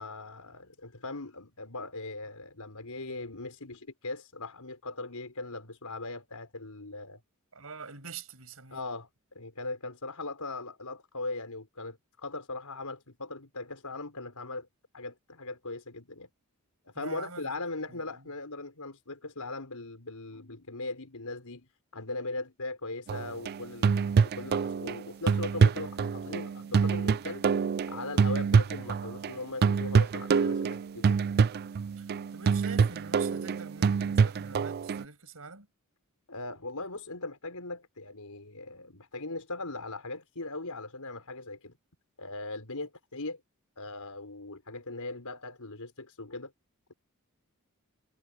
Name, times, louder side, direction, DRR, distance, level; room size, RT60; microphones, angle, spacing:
voice 1, 0.0-7.2 8.7-9.1 9.3-14.7 14.9-16.3 16.8-21.7 21.9-24.1 24.4-27.4 27.9-31.2 36.3-41.7 42.2-43.4 43.8-46.5, left 2 dB, 85° left, 4.8 m, -39 dB
voice 2, 7.5-8.8 16.9-17.5 17.9-18.3 32.0-35.7, right 5 dB, 70° right, 6.6 m, -45 dB
sound 1, 23.1-29.4 29.6-35.0, right 5 dB, 45° right, 0.4 m, -26 dB
head